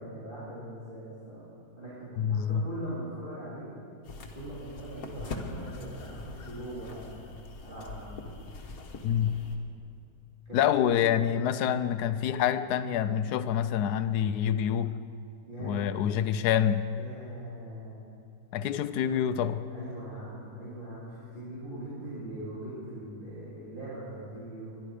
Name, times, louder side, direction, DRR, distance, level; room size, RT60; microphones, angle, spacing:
voice 1, 0.0-1.4 1.8-3.7 4.3-7.3 7.6-8.2 10.5-11.3 15.5-16.3 17.0-18.1 19.7-24.8, right 1 dB, 30° right, -11 dB, 3.7 m, -41 dB
voice 2, 2.2-2.7 9.0-9.4 10.5-14.9 15.6-16.8 18.5-19.6, left 9 dB, 80° left, 12 dB, 1.2 m, -27 dB
sound 1, 4.0-9.6, left 3 dB, 65° left, 1.7 m, -42 dB
21.5 x 11.5 x 5.0 m, 2.7 s
omnidirectional pair, 1.7 m